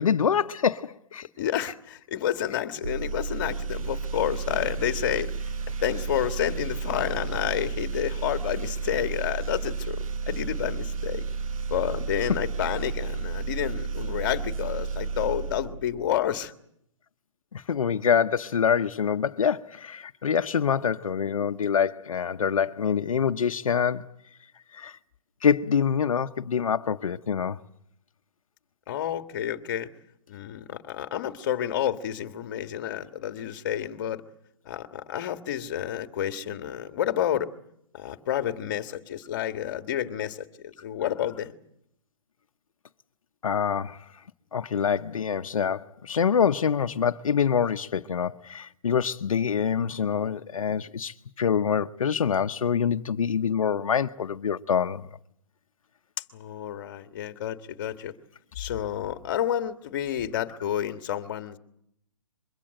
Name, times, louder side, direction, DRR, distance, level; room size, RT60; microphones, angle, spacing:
voice 1, 0.0-1.3 17.5-24.1 24.7-24.9 25.4-27.6 43.4-44.0 44.5-55.1, left 7 dB, 85° left, 0.9 m, -25 dB
voice 2, 1.4-5.3 5.8-11.3 11.7-16.5 28.9-29.9 30.3-34.2 34.6-37.5 37.9-41.5 56.3-58.1 58.5-61.6, left 10 dB, 40° left, 1.6 m, -30 dB
sound 1, 2.8-16.2, right 5 dB, 90° right, 1.2 m, -32 dB
24.0 x 23.0 x 7.8 m
hypercardioid pair, 160°, 17 cm